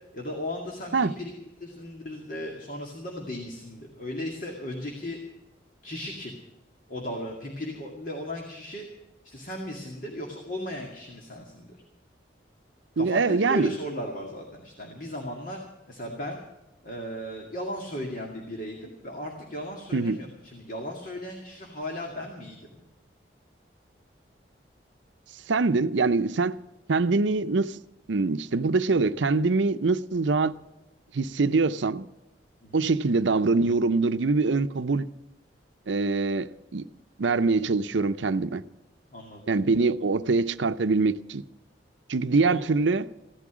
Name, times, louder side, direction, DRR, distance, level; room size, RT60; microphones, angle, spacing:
voice 1, 0.1-1.3 1.6-5.2 5.8-6.4 6.9-8.9 9.2-11.7 12.9-15.6 15.9-16.4 16.8-22.7 32.6-32.9 39.1-39.5 42.4-42.7, left 1 dB, 45° left, 2.1 m, -36 dB
voice 2, 13.0-13.7 19.9-20.2 25.5-26.5 26.9-27.8 28.1-30.5 31.1-32.1 32.7-35.1 35.9-36.9 37.2-38.6 39.5-41.4 42.1-43.1, right 3 dB, 80° right, 0.6 m, -24 dB
16.0 x 12.5 x 6.1 m
head